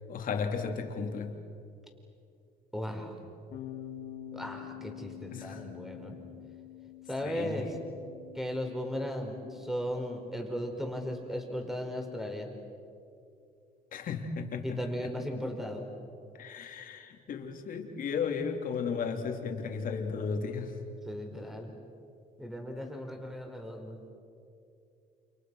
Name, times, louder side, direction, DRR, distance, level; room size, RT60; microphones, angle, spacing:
voice 1, 0.1-1.4 5.3-5.6 7.2-7.8 13.9-15.1 16.4-20.8, left 5 dB, 55° left, 3 dB, 3.2 m, -35 dB
voice 2, 2.7-3.1 4.3-6.2 7.1-7.7 8.3-12.5 14.6-15.8 21.0-21.7 22.4-24.0, equal, ahead, 3 dB, 4.7 m, -36 dB
Bass guitar, 3.5-9.8, left 11 dB, 75° left, 3.5 m, -46 dB
29.5 x 28.5 x 6.4 m, 2.5 s
cardioid pair, 110°, 17 cm